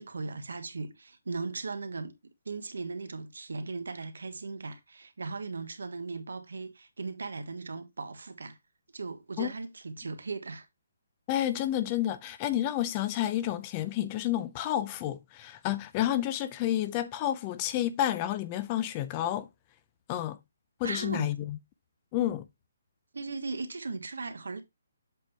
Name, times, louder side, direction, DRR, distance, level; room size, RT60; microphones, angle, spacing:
voice 1, 0.0-2.1 2.4-8.6 8.9-10.6 20.8-21.3 23.1-24.6, right 3 dB, 90° right, 1.2 m, -37 dB
voice 2, 11.3-19.5 20.1-20.4 20.8-21.6 22.1-22.5, left 12 dB, 25° left, 0.5 m, -30 dB
7.5 x 3.6 x 4.2 m
hypercardioid pair, 160°, 0 cm